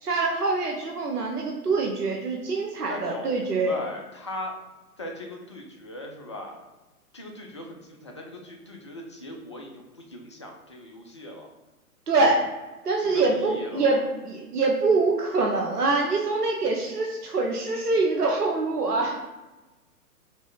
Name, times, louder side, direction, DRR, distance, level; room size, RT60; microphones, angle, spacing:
voice 1, 0.0-3.7 12.1-12.5 12.8-19.2, right 3 dB, 80° right, 0 dB, 1.0 m, -24 dB
voice 2, 2.9-4.5 5.0-6.6 7.1-11.5 13.0-13.8, left 1 dB, 20° left, 1 dB, 0.3 m, -39 dB
4.1 x 3.1 x 3.8 m, 1.1 s
figure-of-eight pair, 125°, 45 cm